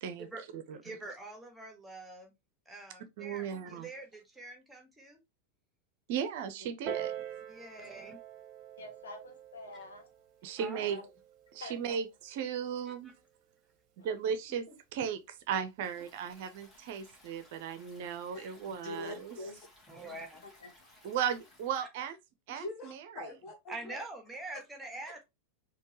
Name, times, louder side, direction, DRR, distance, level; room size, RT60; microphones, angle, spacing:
voice 1, 0.8-2.3 2.7-5.2 7.4-8.2 10.6-10.8 12.9-13.1 19.9-20.4 21.8-21.9 23.7-25.2, right 2 dB, 5° right, 1.3 m, -45 dB
voice 2, 3.2-3.9 6.1-7.1 10.4-11.0 11.5-13.1 14.0-14.6 14.9-19.4 21.0-22.2 22.5-22.6, right 8 dB, 50° right, 0.6 m, -36 dB
Piano, 6.9-12.0 12.9-13.0, right 11 dB, 35° right, 0.9 m, -44 dB
voice 3, 8.8-10.1 10.8-11.1 11.6-12.0 14.0-14.1 20.4-20.7, left 2 dB, 65° left, 1.1 m, -47 dB
Stream, 15.8-21.8, left 1 dB, 15° left, 1.8 m, -60 dB
voice 4, 18.3-19.7 22.5-24.0 25.1-25.2, left 2 dB, 35° left, 1.7 m, -44 dB
4.3 x 2.9 x 3.0 m
figure-of-eight pair, 90°, 0 cm